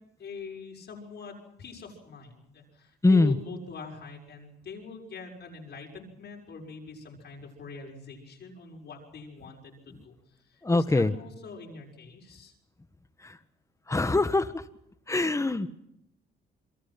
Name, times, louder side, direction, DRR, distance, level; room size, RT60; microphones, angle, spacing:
voice 1, 0.2-10.1 10.5-12.5, left 4 dB, 60° left, -1 dB, 6.4 m, -44 dB
voice 2, 3.0-3.4 9.9-10.0 10.6-11.2 13.2-13.4 13.9-14.7 15.1-15.7, left 2 dB, 15° left, 11 dB, 1.6 m, -23 dB
27.5 x 22.5 x 6.0 m, 0.77 s
cardioid pair, 90°, 20 cm